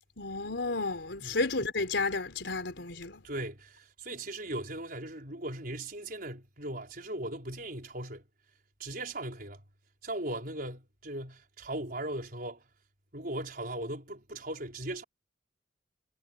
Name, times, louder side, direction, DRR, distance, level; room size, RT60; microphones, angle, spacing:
voice 1, 0.2-3.2, left 3 dB, 90° left, 3.9 m, -32 dB
voice 2, 3.2-8.2 8.8-9.6 10.0-12.6 13.1-15.0, right 1 dB, 55° right, 5.0 m, -38 dB
head